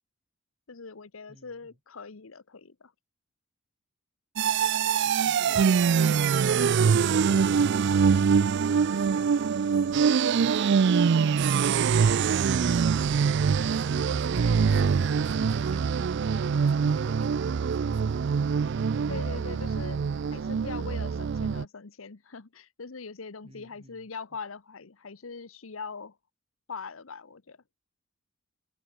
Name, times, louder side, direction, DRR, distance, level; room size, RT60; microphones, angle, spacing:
voice 1, 0.7-2.9 19.1-20.0 20.3-26.2 26.7-27.6, left 4 dB, 90° left, 1.0 m, -41 dB
sound 1, 4.4-21.6, right 6 dB, 60° right, 0.4 m, -24 dB
voice 2, 5.0-6.4 8.7-10.0 10.4-11.4 12.5-16.0 16.7-18.5 23.4-24.1, right 1 dB, 30° right, 5.5 m, -51 dB
head